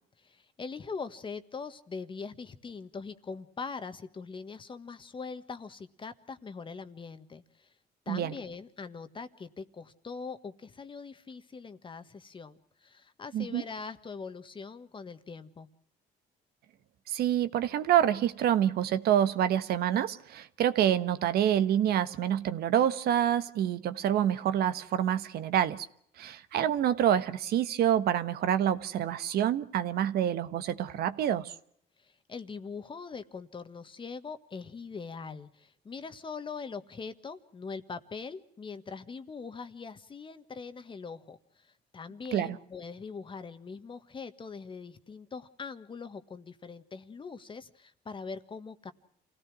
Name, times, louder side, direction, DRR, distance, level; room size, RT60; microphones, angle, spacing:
voice 1, 0.2-7.7 8.0-15.7 32.0-48.9, left 5 dB, 30° left, 1.5 m, -42 dB
voice 2, 17.1-25.9 26.2-31.5 42.3-42.6, right 10 dB, 70° right, 1.3 m, -27 dB
28.0 x 17.0 x 6.2 m
cardioid pair, 110°, 17 cm